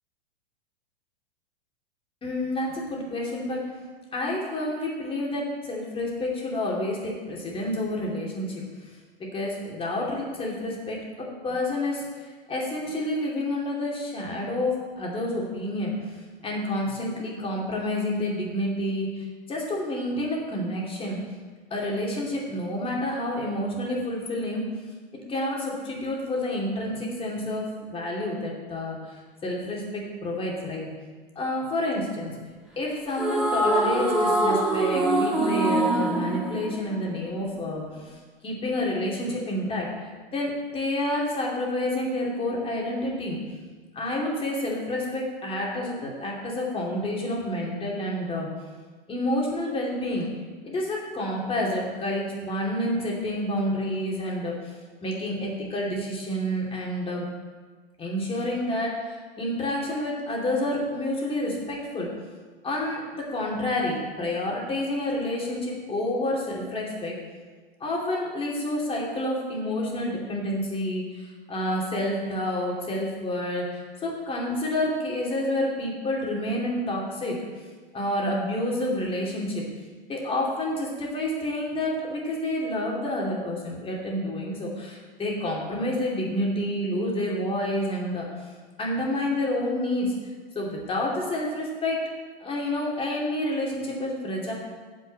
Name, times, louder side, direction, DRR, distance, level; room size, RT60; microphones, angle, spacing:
voice 1, 2.2-3.6 4.1-8.6 9.3-11.0 11.4-12.0 12.5-15.9 16.4-19.1 19.5-21.2 21.7-24.6 25.1-29.0 29.4-30.9 31.4-32.4 32.8-37.8 38.4-39.9 40.3-43.4 43.9-48.5 49.1-50.3 50.6-54.5 55.0-57.2 58.0-62.1 62.6-67.1 67.8-77.4 77.9-79.6 80.1-88.2 88.8-90.1 90.5-92.0 92.4-94.5, left 1 dB, 20° left, -3 dB, 2.7 m, -29 dB
sound 1, 33.1-37.5, right 1 dB, ahead, 1.7 m, -24 dB
7.4 x 6.4 x 7.8 m, 1.4 s
figure-of-eight pair, 95°, 29 cm